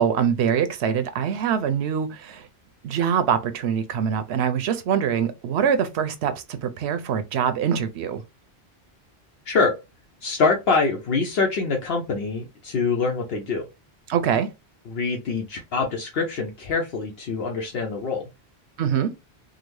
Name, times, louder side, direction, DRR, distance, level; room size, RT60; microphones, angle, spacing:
voice 1, 0.0-2.5 2.8-8.2 14.1-14.5 18.8-19.1, right 8 dB, 80° right, 0.9 m, -24 dB
voice 2, 9.5-9.8 10.2-13.7 14.9-18.3, left 4 dB, 70° left, 0.9 m, -24 dB
3.8 x 2.0 x 3.1 m
omnidirectional pair, 1.1 m